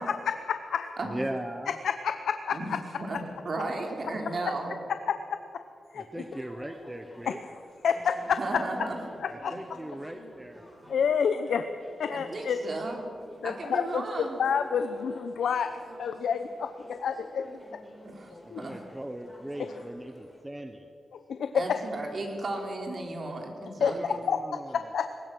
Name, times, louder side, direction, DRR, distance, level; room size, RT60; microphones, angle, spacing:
voice 1, 0.0-0.9 1.7-2.8 3.1-3.2 5.1-5.2 5.9-6.2 7.3-7.4 7.8-8.6 9.2-9.5 10.9-11.7 12.0-12.6 13.4-15.7 16.0-17.5 17.7-17.8 18.5-18.6 19.6-19.7 21.1-21.8 23.8-25.1, left 7 dB, 85° left, 9 dB, 0.8 m, -29 dB
voice 2, 1.0-1.8 5.9-7.4 9.3-10.6 18.4-20.9 23.8-24.7, right 1 dB, 10° right, 6 dB, 1.0 m, -39 dB
voice 3, 2.5-4.8 8.4-9.0 12.1-13.1 13.4-14.4 18.0-18.7 21.5-24.2, right 2 dB, 45° right, 2 dB, 3.7 m, -35 dB
sound 1, 6.1-20.4, equal, 10° left, 4.0 m, -50 dB
22.5 x 19.5 x 6.1 m, 2.6 s
wide cardioid pair, 120°, 0 cm